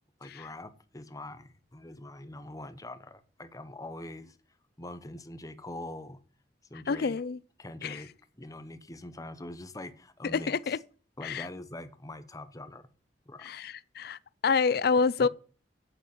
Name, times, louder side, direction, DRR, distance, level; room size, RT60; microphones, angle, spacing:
voice 1, 0.2-4.3 4.8-6.2 6.7-7.1 7.6-8.1 8.4-10.5 11.2-12.9 13.3-13.5 15.2-15.3, left 1 dB, 20° left, 1.0 m, -43 dB
voice 2, 6.9-7.4 7.8-8.0 10.3-10.8 11.2-11.5 13.4-15.3, left 5 dB, 60° left, 0.5 m, -28 dB
8.5 x 8.1 x 8.1 m
head